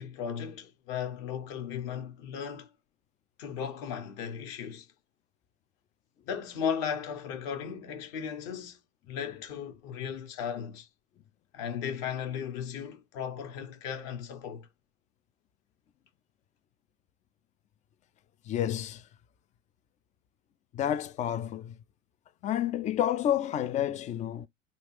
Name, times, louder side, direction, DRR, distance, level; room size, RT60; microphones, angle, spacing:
voice 1, 0.0-2.7 3.4-4.9 6.3-8.8 9.1-10.9 11.5-14.7, left 7 dB, 55° left, 1.2 m, -36 dB
voice 2, 18.5-19.1 20.7-21.8 22.4-24.5, left 11 dB, 20° left, 0.3 m, -30 dB
3.7 x 2.4 x 3.0 m
figure-of-eight pair, 75°, 36 cm